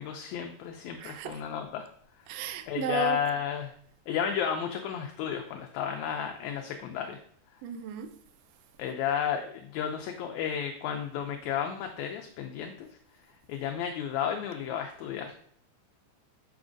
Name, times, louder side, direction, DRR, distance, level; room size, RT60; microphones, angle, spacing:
voice 1, 0.0-1.9 2.3-3.7 4.1-7.2 8.8-12.9 13.5-15.4, left 8 dB, 80° left, 1.8 m, -32 dB
voice 2, 1.0-1.4 2.3-3.2 7.6-8.1, right 9 dB, 90° right, 1.4 m, -34 dB
6.1 x 6.0 x 2.5 m
omnidirectional pair, 3.5 m